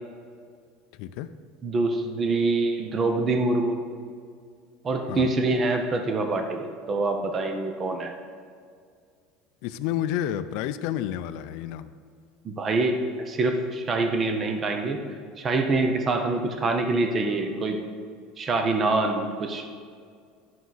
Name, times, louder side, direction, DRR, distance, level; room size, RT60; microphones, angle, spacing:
voice 1, 1.6-3.8 4.8-8.1 12.4-13.0 13.3-15.0 15.4-17.8 18.4-19.6, right 3 dB, 20° right, 5 dB, 0.6 m, -25 dB
voice 2, 9.6-11.9, left 11 dB, 55° left, 11 dB, 0.4 m, -30 dB
11.5 x 6.1 x 4.0 m, 2.1 s
cardioid pair, 180°, 0 cm